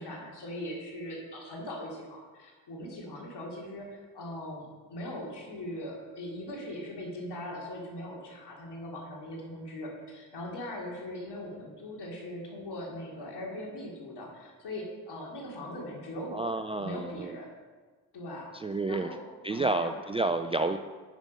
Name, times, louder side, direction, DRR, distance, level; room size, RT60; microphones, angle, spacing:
voice 1, 0.0-17.5 18.1-18.5 18.9-19.2 19.5-20.0, left 1 dB, 55° left, -2 dB, 3.1 m, -40 dB
voice 2, 16.3-17.0 18.6-19.1 19.4-20.8, right 2 dB, 15° right, 7 dB, 0.4 m, -29 dB
8.2 x 6.1 x 5.4 m, 1.4 s
hypercardioid pair, 45°, 46 cm